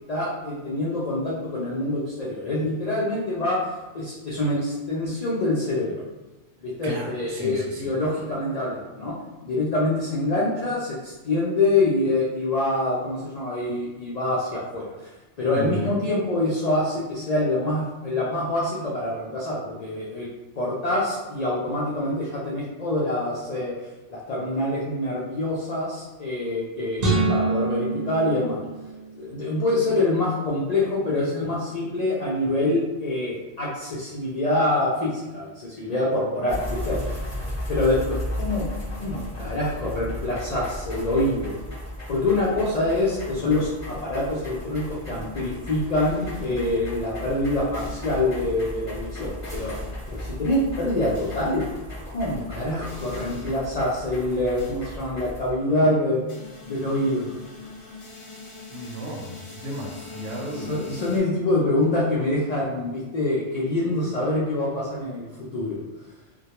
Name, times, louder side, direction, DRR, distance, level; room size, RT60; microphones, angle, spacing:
voice 1, 0.1-3.6 3.9-6.0 6.6-9.1 9.4-15.1 15.4-20.3 20.6-28.6 29.2-37.2 37.7-38.7 39.0-41.6 42.1-49.7 50.1-51.6 52.1-56.2 56.6-57.3 60.5-65.8, left 2 dB, 90° left, -6 dB, 0.3 m, -25 dB
voice 2, 6.8-7.9 15.5-15.9 58.7-61.0, right 1 dB, 80° right, -3 dB, 0.9 m, -34 dB
sound 1, 27.0-29.3, right 3 dB, 45° right, 0.6 m, -25 dB
sound 2, 36.5-55.5, left 1 dB, 15° left, 0.7 m, -35 dB
sound 3, 46.0-46.9 47.7-48.2 49.4-50.3 51.1-51.6 52.9-53.6 54.6-54.9 56.3-61.2, left 4 dB, 55° left, 0.7 m, -42 dB
2.1 x 2.1 x 2.8 m, 1.1 s
omnidirectional pair, 1.3 m